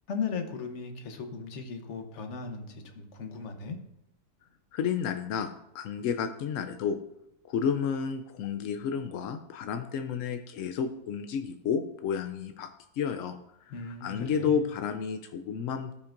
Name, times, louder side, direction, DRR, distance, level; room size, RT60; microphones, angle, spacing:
voice 1, 0.1-3.8 13.7-14.6, left 5 dB, 50° left, 5 dB, 1.1 m, -37 dB
voice 2, 4.7-7.0 7.4-12.7 12.9-15.9, left 7 dB, 75° left, 7 dB, 0.7 m, -31 dB
16.5 x 5.6 x 2.5 m, 0.80 s
omnidirectional pair, 1.8 m